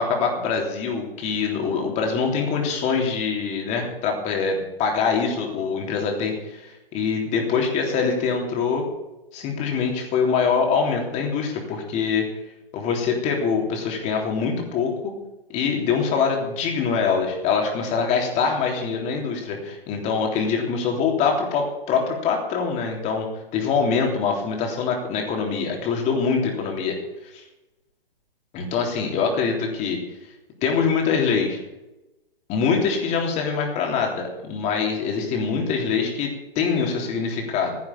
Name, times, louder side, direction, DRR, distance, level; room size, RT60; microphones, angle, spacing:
voice 1, 0.0-8.9 9.3-12.3 12.7-15.1 15.5-23.3 23.5-27.0 27.3-27.4 28.5-30.0 30.6-31.6 32.5-37.8, left 5 dB, 25° left, 1 dB, 3.4 m, -24 dB
14.5 x 10.5 x 7.2 m, 1.0 s
hypercardioid pair, 135°, 29 cm